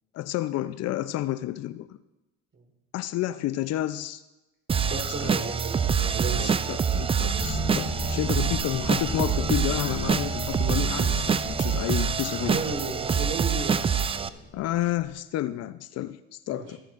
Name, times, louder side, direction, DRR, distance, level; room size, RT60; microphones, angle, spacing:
voice 1, 0.1-2.0 2.9-4.2 6.4-12.6 14.5-16.8, left 14 dB, 50° left, 14 dB, 0.5 m, -30 dB
sound 1, 4.7-14.3, right 6 dB, 20° right, 0.4 m, -26 dB
voice 2, 4.8-7.0 12.4-14.3 16.5-16.7, right 3 dB, 35° right, 1 dB, 3.6 m, -35 dB
sound 2, 7.3-15.1, left 3 dB, 20° left, 2.4 m, -37 dB
15.0 x 10.5 x 2.5 m, 1.0 s
supercardioid pair, 80°, 32 cm